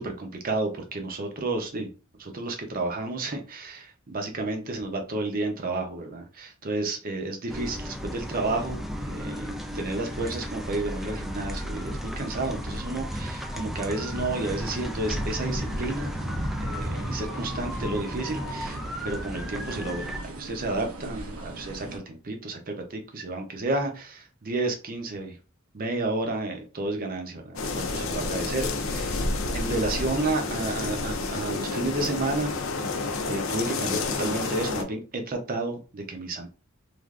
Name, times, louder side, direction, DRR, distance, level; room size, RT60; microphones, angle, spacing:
voice 1, 0.0-1.9 2.2-16.1 16.6-25.4 25.7-32.5 33.3-36.5, right 2 dB, 45° right, 4 dB, 0.7 m, -31 dB
sound 1, 7.5-20.2, equal, ahead, 0.3 m, -34 dB
sound 2, 14.1-22.0, right 2 dB, 80° right, 0.7 m, -40 dB
sound 3, 27.6-34.8, left 3 dB, 65° left, 0.5 m, -30 dB
3.3 x 2.5 x 2.4 m, 0.34 s
head